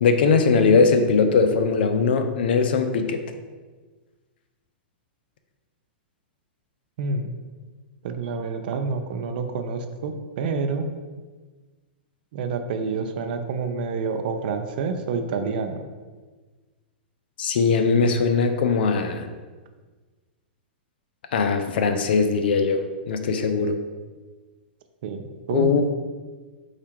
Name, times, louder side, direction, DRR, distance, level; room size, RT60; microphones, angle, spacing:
voice 1, 0.0-3.2 17.4-19.3 21.3-23.8 25.5-25.8, left 5 dB, 70° left, 7 dB, 0.5 m, -20 dB
voice 2, 7.0-7.3 8.0-10.9 12.3-15.7 25.0-25.8, right 4 dB, 60° right, 7 dB, 0.5 m, -28 dB
4.6 x 2.4 x 4.4 m, 1.4 s
hypercardioid pair, 120°, 6 cm